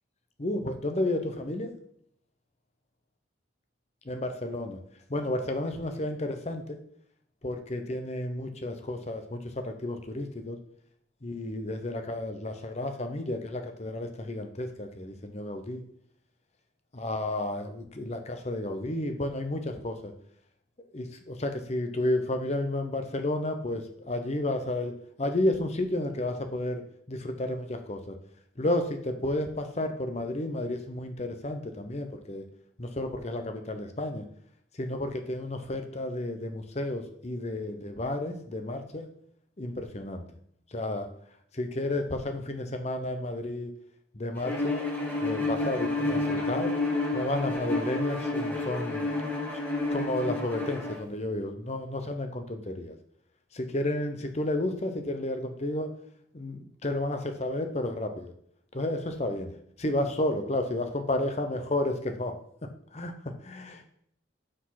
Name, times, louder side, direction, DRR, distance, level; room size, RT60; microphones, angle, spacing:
voice 1, 0.4-1.8 4.1-4.8 5.1-6.8 7.4-10.6 11.2-15.8 16.9-20.1 20.9-28.2 28.6-32.4 32.8-34.3 34.7-39.1 39.6-40.3 40.7-41.1 41.5-43.7 44.1-44.9 45.2-46.7 47.1-49.1 49.9-53.0 53.5-55.9 56.3-58.3 58.7-59.5 59.8-62.3 62.6-63.8, left 1 dB, 35° left, 6 dB, 0.9 m, -32 dB
Bowed string instrument, 44.4-51.0, left 2 dB, 10° left, 1.4 m, -30 dB
6.3 x 5.0 x 5.8 m, 0.67 s
head